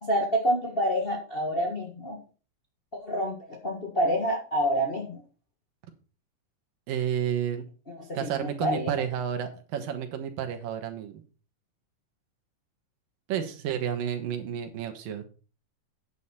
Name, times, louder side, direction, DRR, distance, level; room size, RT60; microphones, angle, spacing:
voice 1, 0.0-2.2 2.9-5.2 7.9-8.9, equal, 65° left, 1 dB, 0.5 m, -28 dB
voice 2, 6.9-7.6 8.1-11.2 13.3-15.2, right 8 dB, 90° right, 6 dB, 2.9 m, -31 dB
9.3 x 8.3 x 4.3 m, 0.36 s
omnidirectional pair, 3.9 m